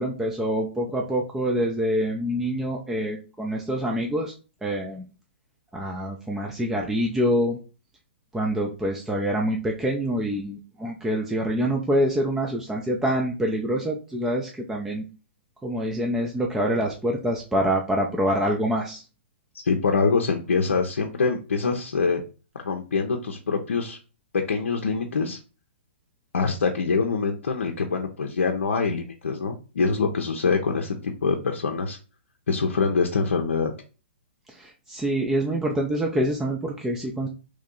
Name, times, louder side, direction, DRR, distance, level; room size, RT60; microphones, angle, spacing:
voice 1, 0.0-4.3 4.6-5.0 5.7-7.6 8.3-15.0 15.6-19.0 34.6-37.3, equal, 5° right, -1 dB, 0.4 m, -26 dB
voice 2, 19.6-22.2 22.6-24.0 24.5-25.4 26.3-32.0 32.5-33.7, left 4 dB, 85° left, 2 dB, 0.6 m, -24 dB
3.1 x 2.7 x 3.7 m, 0.34 s
hypercardioid pair, 130°, 7 cm